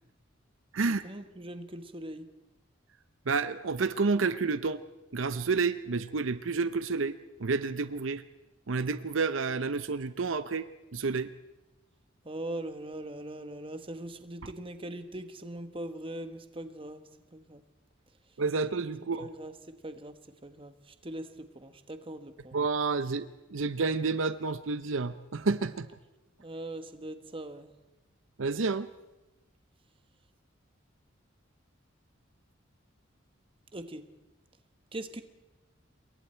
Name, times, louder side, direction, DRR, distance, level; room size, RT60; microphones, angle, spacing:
voice 1, 0.8-2.3 12.2-17.0 17.3-17.6 19.2-20.1 20.4-22.6 26.4-27.7 33.7-34.0 34.9-35.2, right 1 dB, 25° right, 9 dB, 1.3 m, -41 dB
voice 2, 3.3-4.8 5.1-8.2 8.7-10.7 10.9-11.3 18.4-19.3 22.5-25.9 28.4-28.9, right 4 dB, 75° right, 13 dB, 0.7 m, -30 dB
27.0 x 22.5 x 4.5 m, 1.0 s
head